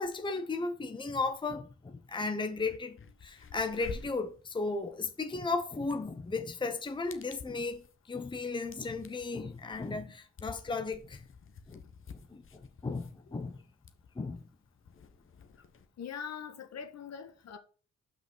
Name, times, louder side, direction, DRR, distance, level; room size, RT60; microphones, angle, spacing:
voice 1, 0.0-3.0 3.2-11.3 11.7-11.8 12.1-13.6 14.2-14.4, left 3 dB, 15° left, 0.9 m, -35 dB
sound 1, 2.1-2.2 2.5-15.9, left 6 dB, 45° left, 1.2 m, -51 dB
voice 2, 13.3-13.6 16.0-17.6, left 7 dB, 60° left, 1.6 m, -43 dB
5.9 x 5.2 x 6.3 m
cardioid pair, 90°, 30 cm